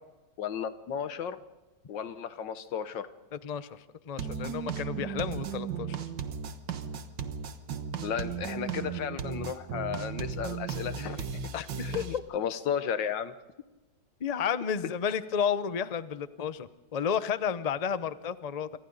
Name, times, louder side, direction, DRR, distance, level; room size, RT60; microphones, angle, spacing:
voice 1, 0.4-1.4 1.9-3.1 8.0-11.2 11.8-13.4, left 8 dB, 90° left, 12 dB, 1.7 m, -34 dB
voice 2, 3.3-6.0 11.5-12.2 14.2-18.8, left 7 dB, 55° left, 13 dB, 0.4 m, -32 dB
sound 1, 4.2-12.2, right 7 dB, 80° right, 1.8 m, -36 dB
29.0 x 24.5 x 4.0 m, 1.1 s
omnidirectional pair, 1.9 m